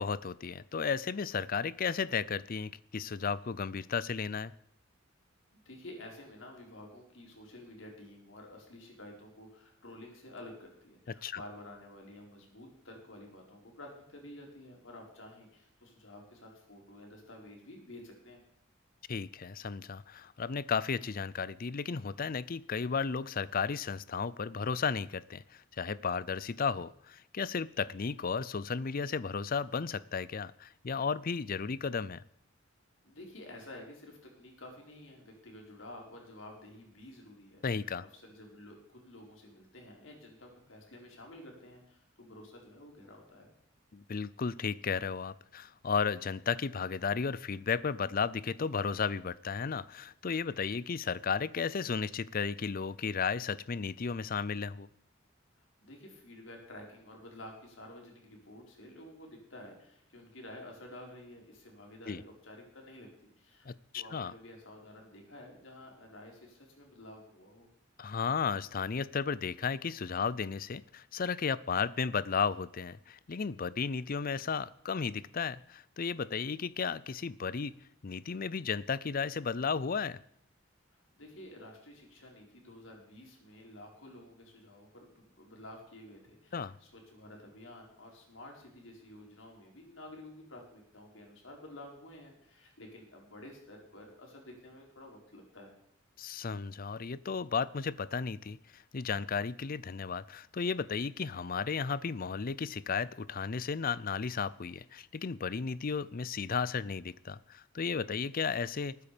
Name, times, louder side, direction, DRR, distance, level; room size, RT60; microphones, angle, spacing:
voice 1, 0.0-4.5 11.2-11.4 19.1-32.2 37.6-38.1 43.9-54.9 62.1-62.2 63.7-64.3 68.0-77.8 78.0-80.2 86.5-86.7 96.2-109.0, left 5 dB, 45° left, 19 dB, 0.5 m, -34 dB
voice 2, 5.6-18.4 33.0-43.5 55.8-67.7 80.9-95.8, left 1 dB, 75° left, 0 dB, 4.6 m, -51 dB
20.0 x 9.4 x 5.1 m, 0.71 s
head